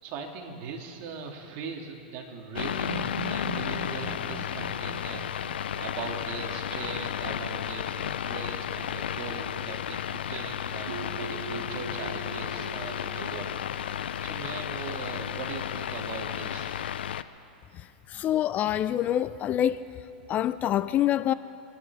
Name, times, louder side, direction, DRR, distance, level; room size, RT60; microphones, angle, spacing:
voice 1, 0.0-16.8, right 5 dB, 45° right, 2.3 m, -40 dB
sound 1, 2.6-17.2, left 9 dB, 85° left, 0.5 m, -33 dB
sound 2, 2.9-6.8 10.9-13.3, right 7 dB, 85° right, 1.4 m, -41 dB
voice 2, 18.1-19.8 20.3-21.3, left 11 dB, 30° left, 0.3 m, -26 dB
25.0 x 11.0 x 4.7 m
hypercardioid pair, 130°, 5 cm